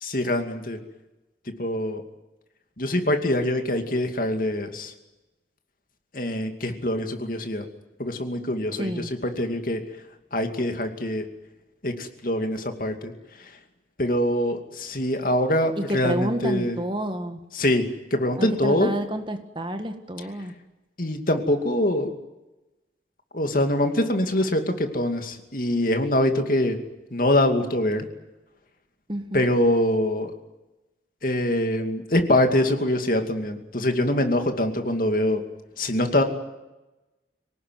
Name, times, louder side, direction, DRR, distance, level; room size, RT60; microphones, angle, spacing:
voice 1, 0.0-0.8 1.6-2.0 2.8-4.9 6.1-7.6 8.0-9.8 10.3-11.2 11.8-13.1 14.0-16.8 17.5-17.9 18.1-18.9 21.0-22.1 23.3-26.8 27.1-28.1 29.3-30.3 31.2-35.4 35.8-36.2, left 1 dB, 50° left, 5 dB, 2.5 m, -24 dB
voice 2, 8.7-9.1 15.8-17.4 18.4-20.5 29.1-29.5, equal, 25° right, 7 dB, 1.7 m, -29 dB
26.0 x 18.0 x 9.5 m, 1.0 s
head